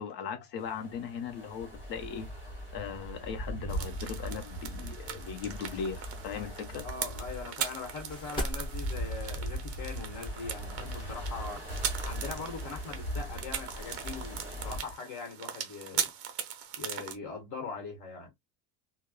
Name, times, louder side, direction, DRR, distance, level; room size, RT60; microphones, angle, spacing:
voice 1, 0.0-2.3 2.7-6.9, left 6 dB, 60° left, 0.9 m, -38 dB
sound 1, 0.6-15.0, equal, 5° right, 1.7 m, -39 dB
sound 2, 3.7-17.2, right 9 dB, 35° right, 0.5 m, -40 dB
sound 3, 6.1-11.1, equal, 10° left, 1.0 m, -42 dB
voice 2, 6.8-11.6 12.0-16.1 16.8-18.3, left 4 dB, 45° left, 1.5 m, -41 dB
3.3 x 2.3 x 2.2 m
cardioid pair, 170°, 42 cm